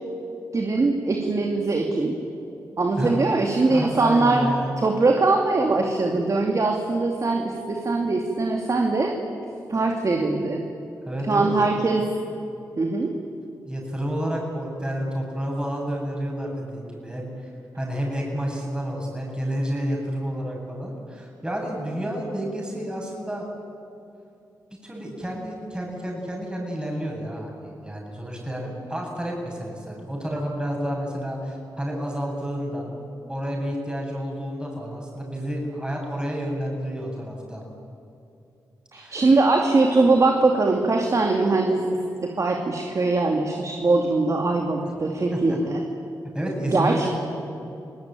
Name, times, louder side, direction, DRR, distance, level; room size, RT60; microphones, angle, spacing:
voice 1, 0.5-2.2 2.8-4.5 4.8-9.1 9.7-10.6 11.3-12.0 12.8-13.1 38.9-45.8 46.6-47.1, right 3 dB, 45° right, 2 dB, 2.6 m, -22 dB
voice 2, 2.9-4.7 11.0-11.7 13.7-17.5 17.7-23.5 24.8-32.9 33.3-37.6 38.9-39.3 45.3-45.6 46.3-47.1, equal, 10° right, -1 dB, 7.9 m, -30 dB
25.0 x 18.5 x 9.2 m, 2.7 s
cardioid pair, 50°, 7 cm